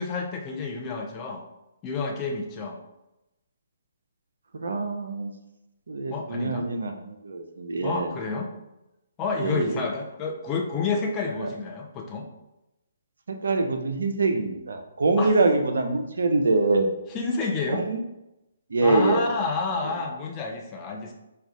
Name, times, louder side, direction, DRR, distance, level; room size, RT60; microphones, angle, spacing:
voice 1, 0.0-1.4 1.8-2.8 6.1-6.7 7.8-8.5 9.2-12.3 15.2-15.3 17.1-17.8 18.8-21.1, left 4 dB, 20° left, 1 dB, 0.5 m, -29 dB
voice 2, 4.5-5.3 5.9-8.1 9.4-9.7 11.4-11.5 13.3-16.9 17.7-18.0 18.7-19.3, right 3 dB, 65° right, 6 dB, 0.4 m, -24 dB
4.8 x 2.2 x 2.5 m, 0.93 s
figure-of-eight pair, 130°, 0 cm